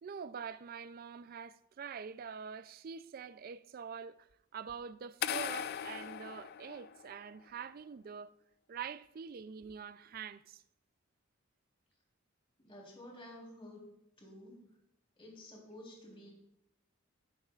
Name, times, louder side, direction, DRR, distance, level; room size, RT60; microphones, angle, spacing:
voice 1, 0.0-4.3 4.5-8.3 8.7-10.6, right 6 dB, 45° right, 0.4 m, -45 dB
sound 1, 5.2-7.3, left 9 dB, 50° left, 0.3 m, -39 dB
voice 2, 12.6-13.9 14.2-14.7 15.2-16.3, left 1 dB, 25° left, 3.5 m, -51 dB
15.5 x 9.8 x 2.4 m
head